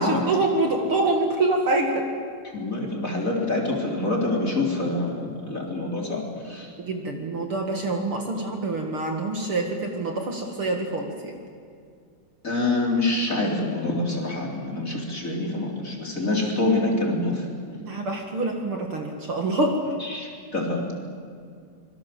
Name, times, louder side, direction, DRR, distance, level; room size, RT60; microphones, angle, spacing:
voice 1, 0.0-2.1 6.8-11.4 17.8-19.9, right 2 dB, 50° right, 3 dB, 2.7 m, -26 dB
voice 2, 2.5-6.7 12.4-17.4 20.0-20.8, left 2 dB, 25° left, -1 dB, 3.9 m, -26 dB
25.0 x 24.0 x 7.8 m, 2.3 s
omnidirectional pair, 3.4 m